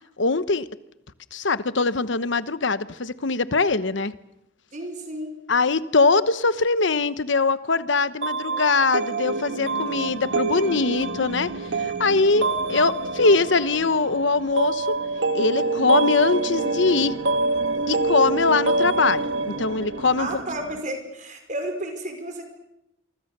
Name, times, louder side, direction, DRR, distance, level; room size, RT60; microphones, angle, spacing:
voice 1, 0.2-0.7 1.3-4.1 5.5-11.5 11.8-14.9 15.3-17.2 17.9-20.4, left 3 dB, 65° left, 14 dB, 1.0 m, -22 dB
voice 2, 4.7-5.3 20.2-22.4, right 1 dB, 40° right, 6 dB, 5.1 m, -32 dB
sound 1, 8.2-20.8, right 3 dB, 70° right, 1.7 m, -26 dB
26.5 x 24.5 x 6.7 m, 0.87 s
head